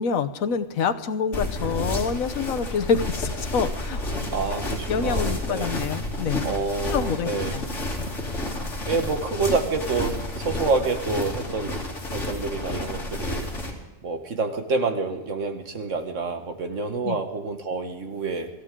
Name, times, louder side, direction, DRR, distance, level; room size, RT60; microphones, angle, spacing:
voice 1, 0.0-4.2 4.9-6.5 6.9-7.6 8.0-8.1 17.0-17.2, left 6 dB, 85° left, 9 dB, 1.3 m, -27 dB
sound 1, 1.3-13.7, left 1 dB, 60° left, 3.0 m, -30 dB
voice 2, 4.3-5.7 6.4-7.6 8.8-11.8 12.1-13.5 14.0-18.5, right 4 dB, 65° right, 6 dB, 1.8 m, -28 dB
25.5 x 14.0 x 3.7 m, 1.0 s
omnidirectional pair, 1.4 m